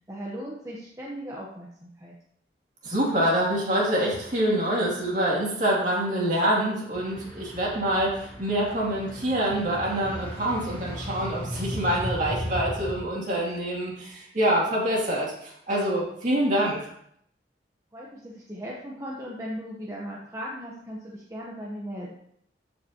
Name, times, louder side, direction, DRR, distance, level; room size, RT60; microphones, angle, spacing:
voice 1, 0.1-2.1 17.9-22.1, equal, 15° right, -4 dB, 0.9 m, -37 dB
voice 2, 2.8-16.9, right 1 dB, 45° right, -4 dB, 2.6 m, -26 dB
sound 1, 6.9-13.0, equal, 15° left, 2.6 m, -36 dB
13.5 x 5.3 x 2.9 m, 0.71 s
head